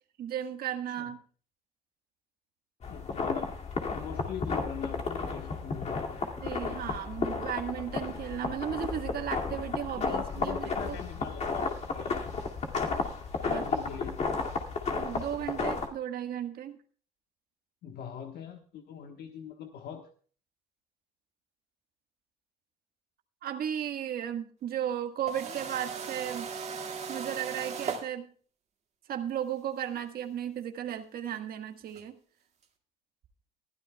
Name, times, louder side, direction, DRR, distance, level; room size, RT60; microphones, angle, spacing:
voice 1, 0.2-1.2 6.4-11.0 13.4-13.6 15.0-16.8 23.4-26.5 27.1-28.3 29.1-32.2, right 10 dB, 65° right, 7 dB, 1.6 m, -35 dB
sound 1, 2.8-15.9, left 4 dB, 40° left, 2.4 m, -33 dB
voice 2, 2.9-3.6 3.9-6.3 10.1-12.2 13.4-14.2 17.8-20.1, left 8 dB, 70° left, 4 dB, 1.3 m, -42 dB
sound 2, 25.3-28.1 29.9-30.0 31.9-32.0, right 6 dB, 40° right, 2.1 m, -37 dB
21.0 x 12.5 x 2.3 m, 0.43 s
cardioid pair, 110°, 17 cm